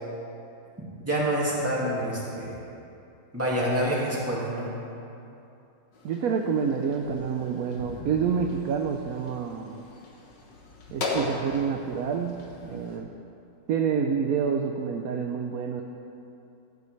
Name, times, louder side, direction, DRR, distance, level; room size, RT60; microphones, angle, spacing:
voice 1, 1.0-2.6 3.3-4.7, right 1 dB, 10° right, -7 dB, 2.1 m, -27 dB
sound 1, 5.9-13.0, left 2 dB, 75° left, 1.8 m, -38 dB
voice 2, 6.0-9.8 10.9-12.4 12.6-13.1 13.7-15.8, right 6 dB, 65° right, 3 dB, 0.9 m, -28 dB
15.0 x 9.3 x 3.3 m, 2.7 s
omnidirectional pair, 1.9 m